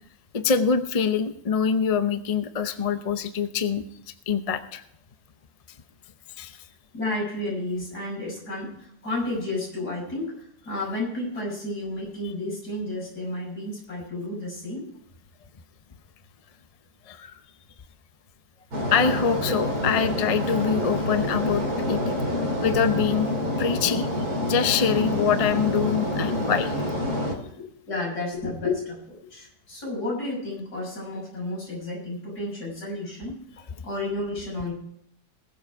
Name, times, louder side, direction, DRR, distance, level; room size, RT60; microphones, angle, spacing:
voice 1, 0.3-3.8 4.3-4.8 6.4-6.6 17.1-17.4 18.9-22.1 22.6-23.3 23.6-24.1 24.5-26.8, left 6 dB, 45° left, 10 dB, 0.5 m, -24 dB
voice 2, 6.9-14.9 19.4-19.5 27.2-33.3 33.8-34.7, left 2 dB, 65° left, -3 dB, 6.8 m, -32 dB
sound 1, 18.7-27.3, left 1 dB, 60° right, 3.4 m, -27 dB
20.5 x 7.5 x 4.7 m, 0.73 s
omnidirectional pair, 1.8 m